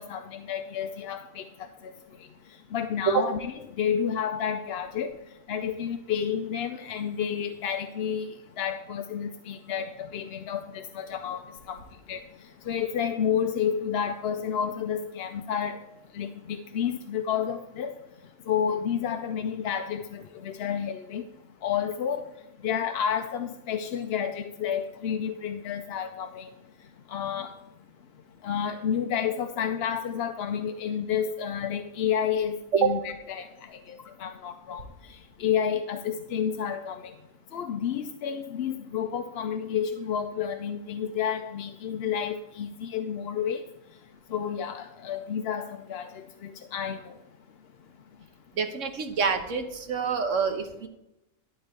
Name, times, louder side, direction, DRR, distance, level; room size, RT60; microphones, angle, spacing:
voice 1, 0.0-1.4 2.7-5.1 5.5-8.3 8.6-11.8 12.1-12.2 12.7-15.8 16.1-17.9 18.5-21.2 21.6-22.2 22.6-26.5 27.1-27.5 28.4-33.5 33.9-34.8 35.4-37.1 37.5-43.6 44.3-47.0, left 8 dB, 60° left, 7 dB, 0.7 m, -30 dB
voice 2, 48.6-50.9, right 6 dB, 65° right, 6 dB, 1.4 m, -26 dB
12.0 x 4.0 x 8.0 m, 0.88 s
omnidirectional pair, 1.4 m